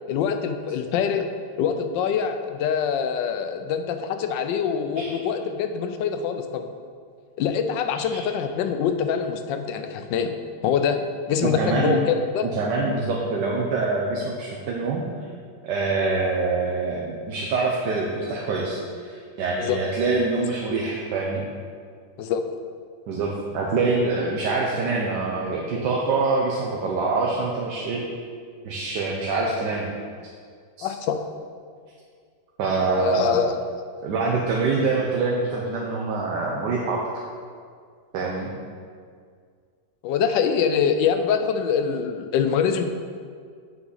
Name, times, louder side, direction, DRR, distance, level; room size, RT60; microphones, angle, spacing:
voice 1, 0.1-1.3 1.6-6.7 7.4-10.3 10.6-12.5 19.6-19.8 22.2-22.4 30.8-31.1 32.9-33.6 40.0-42.8, left 7 dB, 90° left, 7 dB, 1.3 m, -24 dB
voice 2, 11.4-12.0 12.4-15.0 15.6-21.5 23.1-28.0 28.6-29.9 30.8-30.9 32.6-33.4 34.0-37.0 38.1-38.5, right 3 dB, 75° right, -2 dB, 1.4 m, -25 dB
7.6 x 5.9 x 4.0 m, 2.1 s
omnidirectional pair, 1.9 m